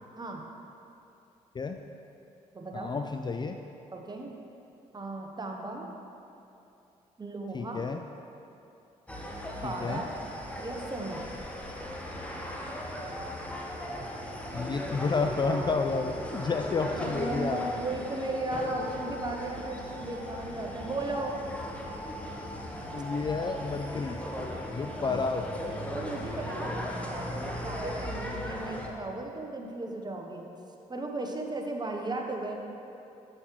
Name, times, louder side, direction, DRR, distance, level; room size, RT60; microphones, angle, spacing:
voice 1, 0.2-0.5 2.5-3.1 3.9-4.3 4.9-5.9 7.2-7.9 9.6-10.1 10.6-11.2 16.8-21.4 24.9-25.5 25.9-30.4 30.9-32.6, right 2 dB, 25° right, 1 dB, 1.0 m, -36 dB
voice 2, 2.7-3.6 7.5-8.0 9.6-10.0 14.5-17.8 22.9-24.2 24.7-25.9, left 4 dB, 25° left, 6 dB, 0.3 m, -31 dB
sound 1, 9.1-28.9, equal, 10° left, 1.0 m, -37 dB
7.3 x 6.5 x 3.1 m, 2.8 s
hypercardioid pair, 50°, 16 cm